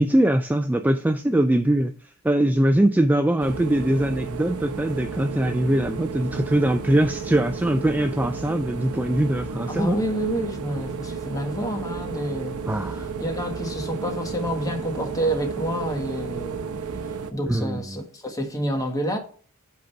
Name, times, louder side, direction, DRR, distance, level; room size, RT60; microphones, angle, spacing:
voice 1, 0.0-1.9 2.2-10.0 12.7-13.1 17.4-18.0, right 1 dB, 10° right, 0.3 m, -22 dB
sound 1, 3.4-17.3, right 5 dB, 85° right, 0.8 m, -33 dB
voice 2, 9.7-12.6 13.2-16.7 17.3-19.2, right 1 dB, 15° left, 1.4 m, -28 dB
8.6 x 3.9 x 5.7 m
head